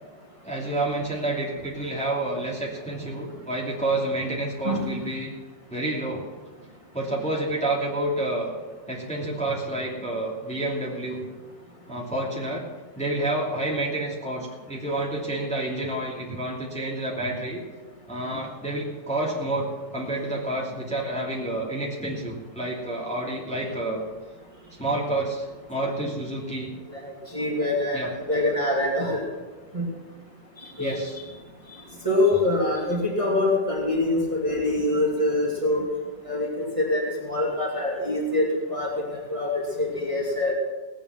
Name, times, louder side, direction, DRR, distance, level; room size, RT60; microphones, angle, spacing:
voice 1, 0.4-5.3 5.7-6.3 6.9-8.5 8.9-11.3 11.9-12.6 13.0-17.6 18.1-24.1 24.8-26.7 27.9-28.1 30.8-31.2, right 1 dB, 5° left, -4 dB, 2.7 m, -29 dB
voice 2, 4.6-5.1 26.9-29.2 29.7-29.8 30.8-31.0 32.0-35.8 36.2-40.5, left 1 dB, 15° right, -3 dB, 2.7 m, -25 dB
18.0 x 8.9 x 6.0 m, 1.4 s
omnidirectional pair, 1.9 m